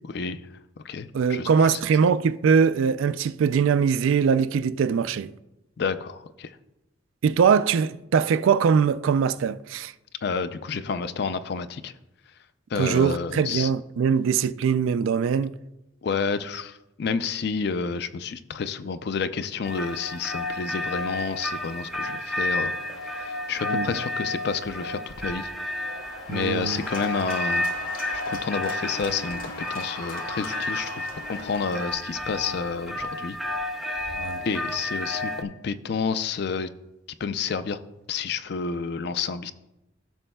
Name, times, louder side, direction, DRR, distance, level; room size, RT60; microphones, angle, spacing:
voice 1, 0.1-0.4 0.8-1.8 5.8-6.5 10.2-11.9 12.7-13.7 16.0-22.7 23.0-25.5 26.3-27.7 28.1-33.4 34.4-36.7 37.2-37.8 38.1-39.5, left 5 dB, 50° left, 0.4 m, -30 dB
voice 2, 1.1-5.3 7.2-9.9 12.8-15.5 23.7-24.0 26.3-26.8 34.1-34.4, right 6 dB, 75° right, 0.3 m, -22 dB
sound 1, 19.6-35.4, left 1 dB, ahead, 0.5 m, -31 dB
Cheering / Applause, 22.3-31.9, left 2 dB, 90° left, 2.1 m, -40 dB
15.0 x 6.2 x 2.2 m
head